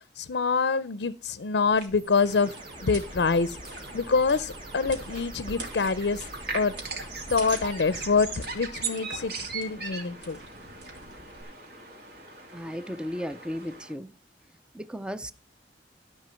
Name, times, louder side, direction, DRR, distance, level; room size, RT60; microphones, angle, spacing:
voice 1, 0.2-2.5 2.8-3.6 3.9-6.2 6.5-6.7 7.3-10.4, left 4 dB, 70° left, 0.5 m, -26 dB
sound 1, 1.6-11.4, right 2 dB, 80° right, 3.3 m, -45 dB
sound 2, 2.0-8.8, right 1 dB, 30° right, 2.2 m, -45 dB
sound 3, 2.2-13.9, right 4 dB, 60° right, 2.3 m, -40 dB
voice 2, 12.5-14.1 14.7-15.3, equal, 5° right, 0.4 m, -35 dB
13.0 x 5.7 x 5.7 m
head